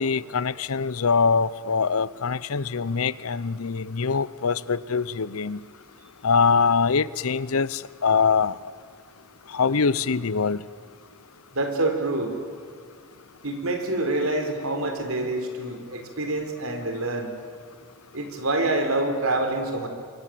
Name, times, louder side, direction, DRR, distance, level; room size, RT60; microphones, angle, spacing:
voice 1, 0.0-5.6 6.2-8.6 9.5-10.6, left 5 dB, 90° left, 18 dB, 0.7 m, -23 dB
voice 2, 11.5-12.4 13.4-17.3 18.1-19.9, right 2 dB, 80° right, 5 dB, 3.9 m, -26 dB
28.5 x 23.5 x 7.7 m, 2.1 s
head